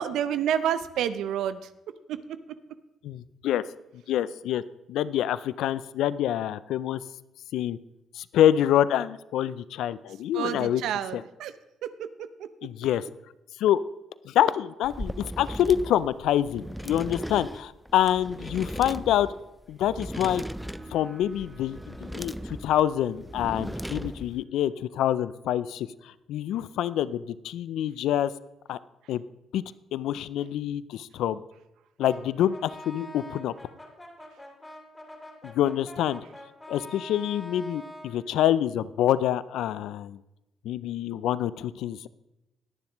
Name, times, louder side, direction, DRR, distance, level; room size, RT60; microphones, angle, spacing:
voice 1, 0.0-1.7 2.1-2.2 10.3-11.5 11.8-12.5 33.0-33.4, right 9 dB, 85° right, 12 dB, 0.6 m, -30 dB
voice 2, 3.0-3.6 4.1-4.6 4.9-7.0 7.5-7.8 8.1-10.8 11.1-11.2 12.6-13.0 13.6-13.8 14.2-19.3 19.7-20.4 20.9-28.3 28.7-28.8 29.1-29.2 29.5-29.6 29.9-31.4 32.0-33.5 35.4-36.2 36.7-40.2 40.6-42.1, left 11 dB, 85° left, 17 dB, 0.3 m, -26 dB
sound 1, 14.8-24.4, equal, ahead, 0.3 m, -38 dB
sound 2, 20.4-27.7, right 2 dB, 30° right, 2.0 m, -55 dB
Brass instrument, 32.0-38.2, left 1 dB, 15° left, 3.0 m, -45 dB
21.0 x 7.2 x 3.0 m, 0.97 s
cardioid pair, 90°, 0 cm